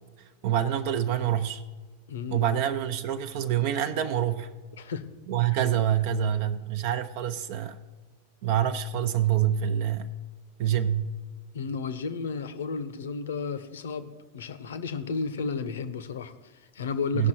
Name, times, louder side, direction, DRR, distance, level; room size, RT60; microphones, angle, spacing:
voice 1, 0.4-1.6 2.3-4.5 5.3-7.8 8.4-10.1 10.6-11.1 17.1-17.3, right 10 dB, 50° right, 0.5 m, -26 dB
voice 2, 2.1-2.6 4.8-5.0 11.5-17.3, left 5 dB, 65° left, 0.8 m, -33 dB
17.0 x 6.0 x 4.5 m
figure-of-eight pair, 90°, 0 cm